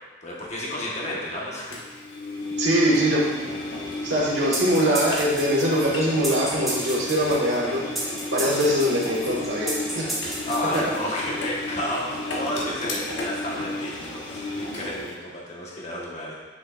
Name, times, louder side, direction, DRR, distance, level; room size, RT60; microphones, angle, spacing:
voice 1, 0.2-2.0 10.5-16.3, left 1 dB, 35° left, -4 dB, 1.3 m, -31 dB
Engine, 1.7-15.1, left 1 dB, 85° left, 1.1 m, -33 dB
voice 2, 2.6-3.5 4.0-7.8 8.3-10.2 10.7-10.8 12.6-12.7, equal, 80° right, -5 dB, 1.6 m, -23 dB
sound 1, 4.5-11.2, right 1 dB, ahead, 1.6 m, -33 dB
7.9 x 6.3 x 2.5 m, 1.3 s
head